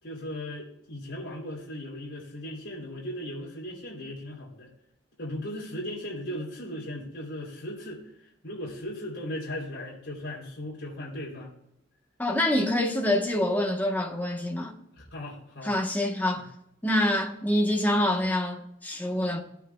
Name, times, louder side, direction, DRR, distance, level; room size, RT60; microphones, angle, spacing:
voice 1, 0.0-4.7 5.2-11.5 14.9-15.7 16.4-16.5, left 1 dB, 65° left, 3.3 m, -37 dB
voice 2, 12.2-14.7 15.6-16.5 16.8-19.4, left 1 dB, 10° left, 1.1 m, -26 dB
15.5 x 9.2 x 2.3 m
head